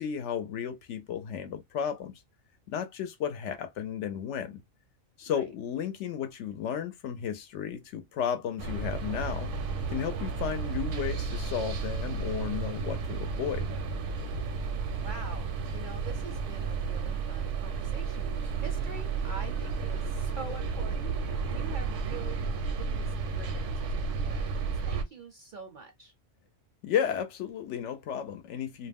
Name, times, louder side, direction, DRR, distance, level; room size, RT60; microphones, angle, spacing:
voice 1, 0.0-2.2 2.7-4.6 5.2-9.5 9.9-13.8 26.8-28.9, left 8 dB, 70° left, 0.8 m, -33 dB
sound 1, 8.6-25.0, right 5 dB, 75° right, 0.9 m, -32 dB
voice 2, 15.0-22.5 22.8-26.1, right 4 dB, 55° right, 0.6 m, -45 dB
2.4 x 2.1 x 3.4 m
omnidirectional pair, 1.3 m